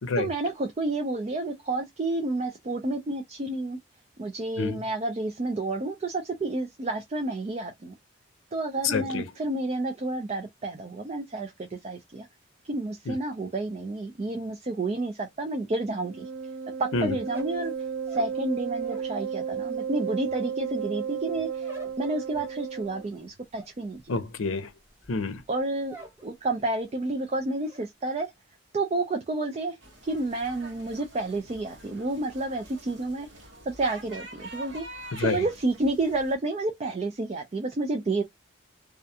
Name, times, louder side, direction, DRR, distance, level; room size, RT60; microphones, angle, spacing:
voice 1, 0.2-3.8 4.2-8.0 8.5-12.3 12.7-16.3 16.8-17.7 18.1-24.0 25.5-25.9 26.2-28.3 28.7-29.8 30.0-33.3 33.6-34.9 35.2-38.2, right 2 dB, 30° right, 0.3 m, -30 dB
voice 2, 8.8-9.3 13.1-13.2 16.9-17.2 24.1-24.7 25.1-25.4 35.1-35.5, left 4 dB, 90° left, 0.6 m, -28 dB
Wind instrument woodwind instrument, 16.0-23.1, right 7 dB, 90° right, 0.5 m, -33 dB
sound 1, 17.2-19.2 19.5-26.3 26.6-27.1 27.3-27.9, equal, 10° right, 0.8 m, -48 dB
sound 2, 29.8-36.3, right 2 dB, 70° right, 1.0 m, -46 dB
2.4 x 2.1 x 2.7 m
head